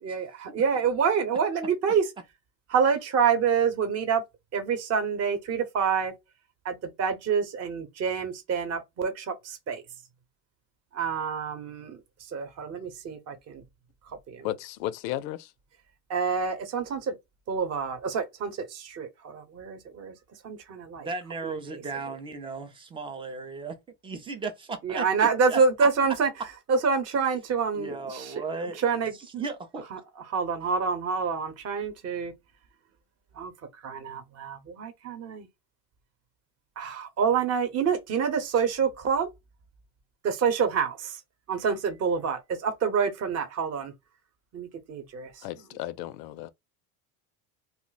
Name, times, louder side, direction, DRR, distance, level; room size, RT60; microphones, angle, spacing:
voice 1, 0.0-2.1 2.7-4.2 4.5-6.1 6.6-9.8 10.9-12.0 12.3-13.6 14.3-14.5 16.1-17.2 17.5-20.1 20.4-21.1 21.4-21.8 24.8-26.3 26.7-28.3 28.8-29.1 29.9-30.0 30.3-32.3 33.3-33.5 33.8-35.5 36.8-39.3 40.2-41.2 41.5-43.9 44.5-45.4, right 6 dB, 30° right, 0.8 m, -27 dB
voice 2, 14.4-15.5 45.4-46.5, left 14 dB, 85° left, 0.6 m, -34 dB
voice 3, 21.0-23.8 24.0-25.9 27.7-28.8 29.3-29.9, right 4 dB, 15° right, 0.3 m, -35 dB
2.4 x 2.1 x 3.9 m
supercardioid pair, 110°, 48 cm